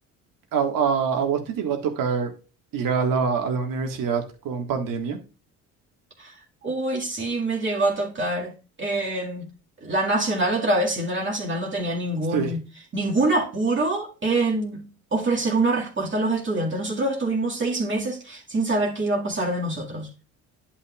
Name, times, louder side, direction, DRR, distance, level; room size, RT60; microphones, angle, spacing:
voice 1, 0.5-2.3 2.7-5.2 12.3-12.5, right 6 dB, 60° right, 1.9 m, -25 dB
voice 2, 6.6-9.5 9.8-12.6 12.9-20.2, right 2 dB, 30° right, 2.1 m, -25 dB
10.5 x 5.9 x 2.4 m
hypercardioid pair, 65°, 37 cm